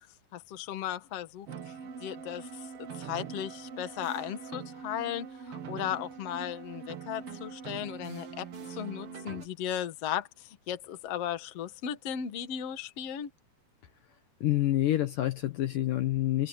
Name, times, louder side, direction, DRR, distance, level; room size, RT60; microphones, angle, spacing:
voice 1, 0.3-1.7 2.0-13.3, left 10 dB, 50° left, 2.2 m, -36 dB
sound 1, 1.5-9.5, right 6 dB, 55° right, 1.7 m, -43 dB
voice 2, 14.4-16.5, left 14 dB, 65° left, 2.5 m, -27 dB
omnidirectional pair, 4.4 m